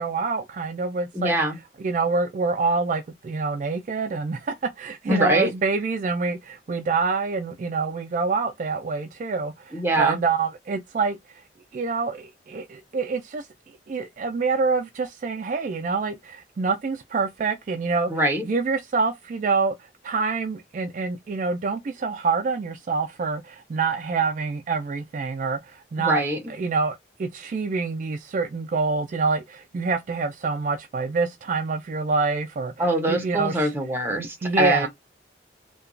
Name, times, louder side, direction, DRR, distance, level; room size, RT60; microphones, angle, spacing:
voice 1, 0.0-1.4 1.8-11.2 11.7-13.5 13.9-18.1 18.5-26.2 26.6-33.7 34.2-34.9, right 4 dB, 45° right, 0.3 m, -26 dB
voice 2, 1.1-1.6 5.1-5.5 9.7-10.2 18.1-18.4 26.0-26.4 32.8-34.9, right 1 dB, 10° right, 0.7 m, -23 dB
2.8 x 2.2 x 2.5 m
head